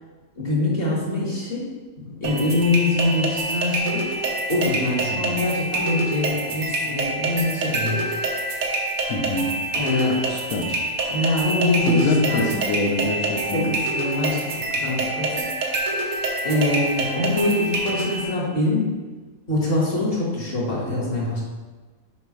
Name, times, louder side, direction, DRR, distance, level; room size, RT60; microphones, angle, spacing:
voice 1, 0.4-1.7 2.0-4.0 4.5-8.0 9.7-10.2 11.1-12.6 13.2-15.5 16.4-18.9 19.5-21.4, left 2 dB, 45° left, -5 dB, 1.9 m, -24 dB
sound 1, 2.2-18.2, right 2 dB, 85° right, 1.4 m, -26 dB
voice 2, 5.1-5.4 9.1-9.6 10.3-10.8 11.9-13.7, left 2 dB, 85° left, 0 dB, 1.2 m, -25 dB
7.0 x 5.2 x 3.1 m, 1.3 s
omnidirectional pair, 1.5 m